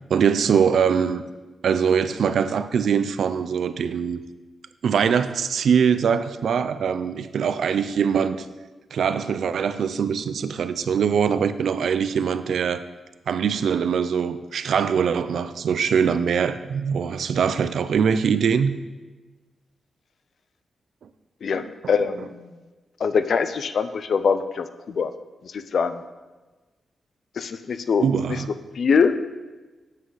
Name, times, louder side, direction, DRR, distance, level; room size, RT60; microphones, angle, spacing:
voice 1, 0.1-1.2 1.6-4.2 4.8-8.5 8.9-12.8 13.3-18.7 21.5-21.9 28.0-28.5, right 7 dB, 75° right, 12 dB, 0.5 m, -22 dB
voice 2, 21.4-22.5 23.0-25.1 25.5-26.0 27.4-28.4 28.8-29.1, left 6 dB, 60° left, 11 dB, 0.5 m, -23 dB
9.6 x 8.2 x 4.0 m, 1.2 s
wide cardioid pair, 120°, 0 cm